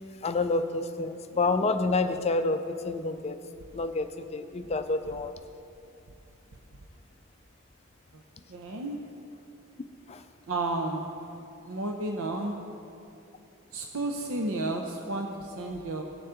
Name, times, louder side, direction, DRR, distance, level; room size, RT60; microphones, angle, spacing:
voice 1, 0.2-3.4 3.7-5.3 10.1-10.2, left 3 dB, 30° left, 9 dB, 0.4 m, -28 dB
voice 2, 8.5-9.0 10.5-11.1 11.6-12.6 13.7-16.0, right 2 dB, 70° right, 2 dB, 0.7 m, -32 dB
17.5 x 7.0 x 3.8 m, 2.7 s
head